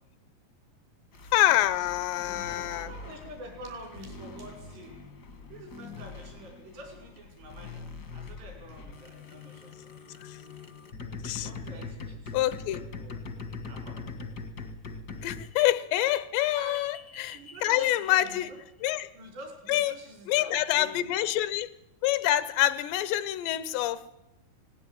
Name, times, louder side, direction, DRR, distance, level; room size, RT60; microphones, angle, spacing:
sound 1, 1.1-15.5 16.2-18.6, left 4 dB, 70° left, 0.9 m, -43 dB
voice 1, 1.3-2.9 10.3-10.4 11.2-11.5 12.3-12.8 15.2-18.5 18.8-19.1 19.7-20.0 20.3-21.7 22.0-24.0, left 14 dB, 90° left, 16 dB, 3.1 m, -26 dB
voice 2, 2.7-5.0 5.5-7.9 8.1-10.1 11.4-13.1 13.6-14.0 16.5-16.8 17.3-18.6 19.1-21.1, right 1 dB, 85° right, 2 dB, 7.7 m, -47 dB
18.5 x 17.0 x 9.1 m, 0.90 s
omnidirectional pair, 4.8 m